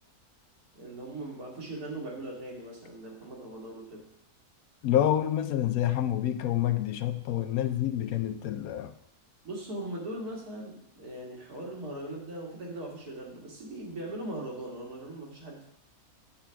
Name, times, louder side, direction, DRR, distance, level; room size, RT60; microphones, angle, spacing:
voice 1, 0.8-4.1 9.4-15.7, right 1 dB, 80° right, 2.4 m, -40 dB
voice 2, 4.8-8.9, left 11 dB, 75° left, 1.0 m, -28 dB
8.4 x 7.4 x 3.5 m
omnidirectional pair, 1.6 m